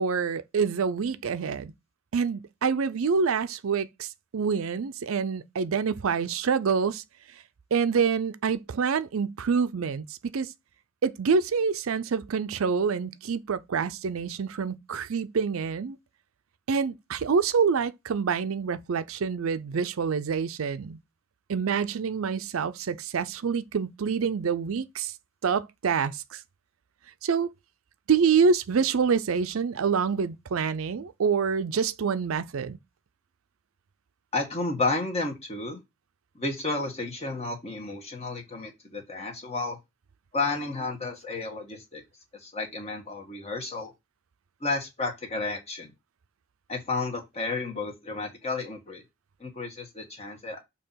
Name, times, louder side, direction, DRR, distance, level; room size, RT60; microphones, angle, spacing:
voice 1, 0.0-1.7 2.1-7.0 7.7-10.1 10.3-10.5 11.0-16.0 16.7-21.0 21.5-25.1 25.4-26.4 27.2-27.5 28.1-32.8, right 5 dB, 85° right, 0.5 m, -26 dB
voice 2, 34.3-35.8 36.3-39.8 40.3-42.0 42.4-43.9 44.6-45.9 46.7-49.0 49.4-50.6, left 3 dB, 30° left, 1.6 m, -32 dB
6.7 x 2.9 x 5.6 m
head